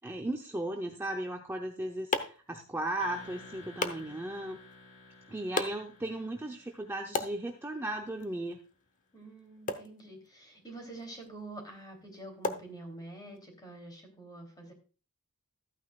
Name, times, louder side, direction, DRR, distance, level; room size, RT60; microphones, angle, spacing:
voice 1, 0.0-4.6 5.3-8.6, right 1 dB, 10° right, 2 dB, 0.7 m, -36 dB
sound 1, 1.4-13.4, left 3 dB, 35° left, 0.9 m, -41 dB
sound 2, 3.0-7.9, left 3 dB, 60° left, 2.9 m, -53 dB
voice 2, 9.1-14.7, right 2 dB, 20° left, 2 dB, 3.1 m, -47 dB
14.0 x 9.3 x 2.4 m, 0.36 s
head